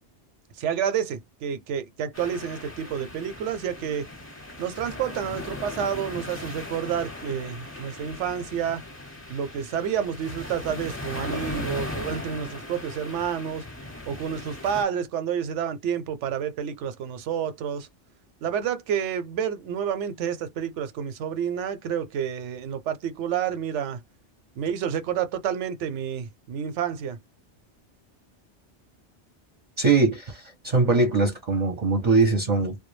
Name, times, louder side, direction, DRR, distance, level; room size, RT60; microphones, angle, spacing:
voice 1, 0.6-4.1 4.6-8.8 9.3-13.6 14.1-17.9 18.4-24.0 24.6-27.2, right 8 dB, 90° right, 0.9 m, -29 dB
sound 1, 2.1-14.8, left 1 dB, 15° left, 0.7 m, -38 dB
voice 2, 29.8-32.8, right 3 dB, 45° right, 0.6 m, -22 dB
2.2 x 2.1 x 3.1 m
omnidirectional pair, 1.2 m